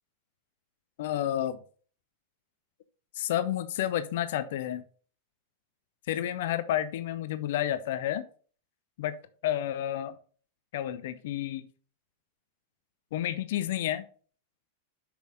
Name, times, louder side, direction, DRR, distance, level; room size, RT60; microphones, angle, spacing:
voice 1, 1.0-1.6 3.2-4.8 6.1-8.2 9.0-10.1 10.7-11.7 13.1-14.0, left 12 dB, 55° left, 13 dB, 0.6 m, -30 dB
6.9 x 6.1 x 3.8 m, 0.42 s
figure-of-eight pair, 90°, 0 cm